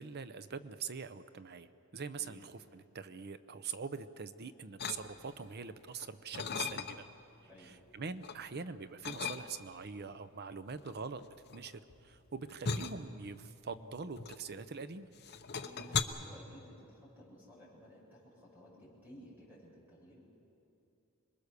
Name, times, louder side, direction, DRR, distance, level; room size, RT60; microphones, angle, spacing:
voice 1, 0.0-7.1 7.6-11.2 11.5-15.1, right 5 dB, 50° right, 12 dB, 0.7 m, -44 dB
sound 1, 4.8-5.5 5.9-7.2 7.6-8.4 9.0-9.8 10.7-14.8 15.1-16.0, left 5 dB, 50° left, 0.9 m, -38 dB
voice 2, 15.6-20.2, equal, 10° right, -5 dB, 7.6 m, -55 dB
26.5 x 21.5 x 6.8 m, 2.8 s
head